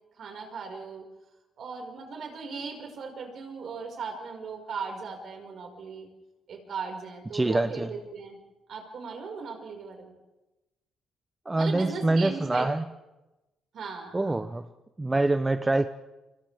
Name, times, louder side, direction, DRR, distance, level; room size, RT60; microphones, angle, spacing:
voice 1, 0.2-1.1 1.6-6.1 6.5-8.4 8.7-10.2 11.5-12.7 13.7-14.4, right 5 dB, 60° right, 2 dB, 5.4 m, -38 dB
voice 2, 7.3-7.9 11.5-12.8 14.1-14.6 15.0-15.9, right 2 dB, 15° right, 9 dB, 0.8 m, -25 dB
29.5 x 25.0 x 3.6 m, 1.0 s
cardioid pair, 90°, 0 cm